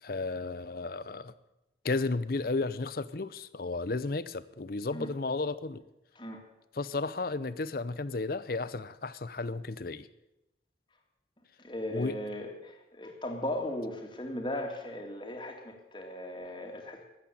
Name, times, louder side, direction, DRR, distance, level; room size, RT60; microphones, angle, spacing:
voice 1, 0.0-1.3 1.8-5.8 6.7-10.1 11.9-12.2, left 3 dB, 55° left, 16 dB, 0.7 m, -33 dB
voice 2, 11.6-17.1, left 1 dB, 25° left, 3 dB, 2.3 m, -37 dB
13.5 x 8.5 x 9.9 m, 0.95 s
head